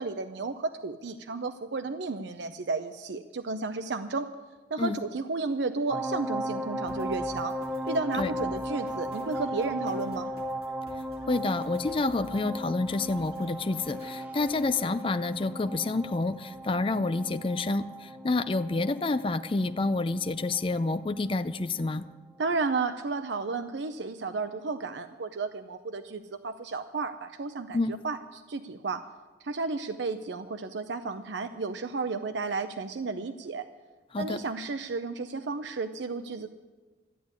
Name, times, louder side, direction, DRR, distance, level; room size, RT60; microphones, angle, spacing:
voice 1, 0.0-4.3 4.7-7.6 7.9-10.3 22.4-29.0 29.4-33.7 34.2-36.5, right 4 dB, 70° right, 9 dB, 0.6 m, -33 dB
sound 1, 5.9-21.5 21.8-21.9, equal, 5° right, 0.9 m, -36 dB
sound 2, 6.9-14.9, right 1 dB, 55° right, 2.1 m, -52 dB
voice 2, 11.3-22.0 27.7-28.0 34.1-34.4, left 3 dB, 30° left, 11 dB, 0.4 m, -28 dB
13.5 x 8.2 x 9.6 m, 1.3 s
head